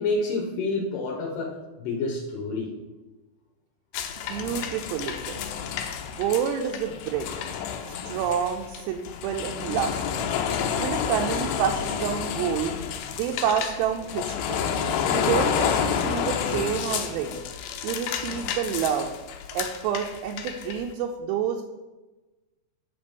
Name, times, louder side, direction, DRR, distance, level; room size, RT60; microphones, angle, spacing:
voice 1, 0.0-2.7, left 3 dB, 70° left, 0 dB, 2.1 m, -28 dB
sound 1, 3.9-20.8, left 7 dB, 90° left, 2.0 m, -30 dB
voice 2, 4.2-5.4 6.1-7.3 7.8-10.3 10.8-12.7 13.2-14.6 15.1-17.4 17.8-19.1 19.5-21.6, right 8 dB, 80° right, 1 dB, 2.6 m, -28 dB
9.5 x 6.1 x 5.2 m, 1.1 s
omnidirectional pair, 5.2 m